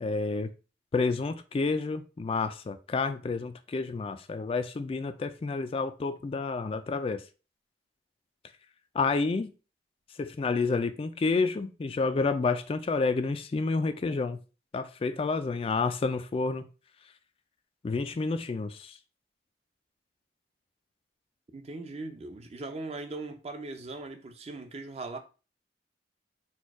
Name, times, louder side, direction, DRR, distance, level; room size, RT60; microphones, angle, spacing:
voice 1, 0.0-0.5 0.9-7.2 8.9-9.5 10.2-14.4 14.7-16.7 17.8-19.0, left 4 dB, 30° left, 0.3 m, -29 dB
voice 2, 21.5-25.2, right 3 dB, 35° right, 0.6 m, -39 dB
4.2 x 2.3 x 4.6 m
head